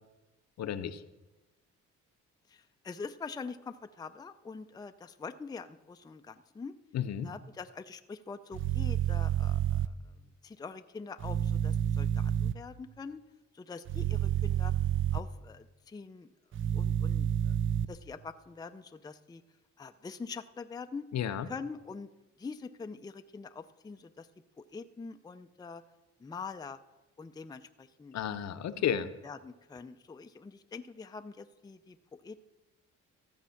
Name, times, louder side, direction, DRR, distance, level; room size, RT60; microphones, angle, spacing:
voice 1, 0.6-1.0 6.9-7.3 21.1-21.5 28.1-29.1, left 9 dB, 60° left, 10 dB, 0.8 m, -32 dB
voice 2, 2.5-6.7 7.2-9.9 10.4-13.2 13.5-14.7 15.1-16.3 16.7-17.6 17.9-19.4 19.8-21.1 21.5-22.1 22.4-24.3 24.6-25.8 26.2-26.8 27.2-28.1 29.2-32.4, left 4 dB, 15° left, 8 dB, 0.5 m, -44 dB
sound 1, 8.5-9.9 11.2-12.5 13.9-15.2 16.5-17.8, right 10 dB, 40° right, 0.5 m, -29 dB
14.5 x 7.3 x 5.7 m, 1.1 s
cardioid pair, 90°, 30 cm